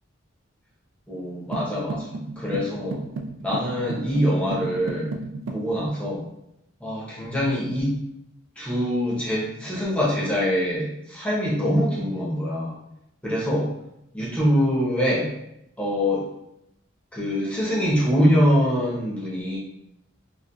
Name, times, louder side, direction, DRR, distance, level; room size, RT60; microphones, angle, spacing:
voice 1, 1.1-3.0 3.4-5.1 5.5-6.3 6.8-8.0 8.6-12.8 13.2-13.7 14.1-15.3 15.8-16.3 17.1-19.6, equal, 5° left, -7 dB, 0.6 m, -24 dB
sound 1, 1.5-5.7, right 2 dB, 90° right, 0.4 m, -34 dB
3.9 x 2.3 x 2.3 m, 0.81 s
head